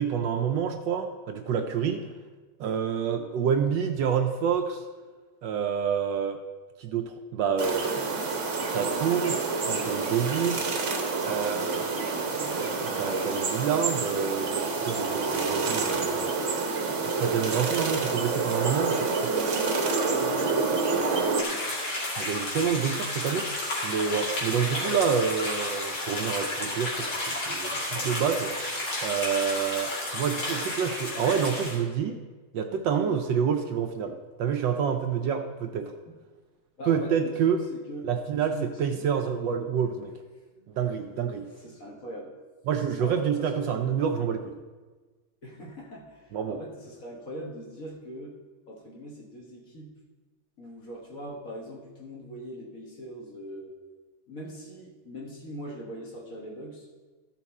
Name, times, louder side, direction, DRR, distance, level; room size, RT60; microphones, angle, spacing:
voice 1, 0.0-2.1 2.6-4.8 5.4-6.4 6.8-8.2 8.7-10.7 11.2-16.3 16.9-19.3 20.1-20.8 22.2-23.5 23.8-32.2 32.5-35.9 36.9-37.6 38.0-40.1 40.7-41.5 42.7-44.5 46.3-46.6, right 7 dB, 70° right, 5 dB, 1.2 m, -28 dB
voice 2, 1.8-2.2 19.7-21.7 24.2-24.3 36.1-36.2 36.8-39.1 40.6-40.7 41.6-42.3 42.8-43.8 45.4-48.4 48.7-50.0 50.6-53.7 54.3-56.9, equal, 45° left, -1 dB, 1.5 m, -42 dB
sound 1, 7.6-21.4, right 4 dB, 45° right, 1.1 m, -28 dB
sound 2, 21.4-31.8, left 1 dB, 85° left, 3.2 m, -32 dB
13.5 x 5.8 x 4.1 m, 1.3 s
omnidirectional pair, 2.3 m